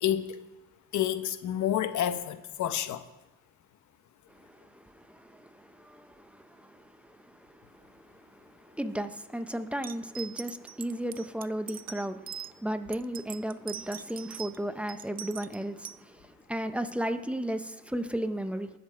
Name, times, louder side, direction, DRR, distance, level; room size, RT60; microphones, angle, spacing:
voice 1, 0.0-0.4 0.9-3.0, left 11 dB, 70° left, 12 dB, 0.9 m, -29 dB
voice 2, 4.4-18.7, right 1 dB, 5° right, 9 dB, 0.8 m, -35 dB
sound 1, 9.8-12.5 12.9-14.6 14.9-16.0, right 9 dB, 30° right, 0.4 m, -42 dB
20.0 x 7.1 x 4.5 m, 1.1 s
cardioid pair, 90°, 30 cm